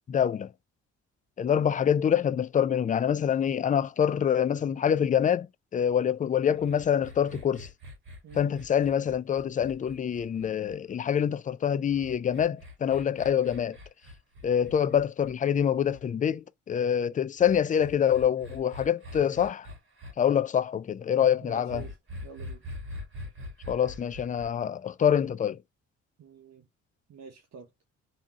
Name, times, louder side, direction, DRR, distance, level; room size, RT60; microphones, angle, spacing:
voice 1, 0.1-0.5 1.4-7.7 8.4-13.8 14.4-19.7 20.2-21.8 23.7-25.6, left 8 dB, 25° left, 0.3 m, -26 dB
sound 1, 6.5-11.0 11.9-16.0 17.4-20.1 21.7-24.5, left 1 dB, 45° right, 2.4 m, -44 dB
voice 2, 8.2-8.6 21.4-22.0 22.2-22.7 26.2-26.7 27.1-27.7, right 6 dB, 60° right, 0.9 m, -47 dB
3.6 x 2.8 x 2.8 m
cardioid pair, 90°, 30 cm